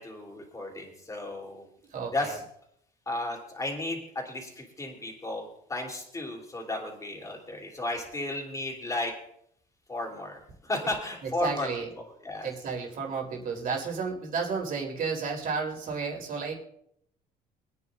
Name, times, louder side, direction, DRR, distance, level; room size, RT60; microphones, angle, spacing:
voice 1, 0.0-1.7 2.1-2.4 3.0-9.1 9.9-11.7 12.2-12.5, left 2 dB, 20° left, 0 dB, 3.4 m, -34 dB
voice 2, 1.9-2.4 11.2-11.9 12.4-16.5, right 5 dB, 55° right, -1 dB, 3.6 m, -32 dB
25.0 x 9.6 x 2.6 m, 0.73 s
cardioid pair, 110°, 17 cm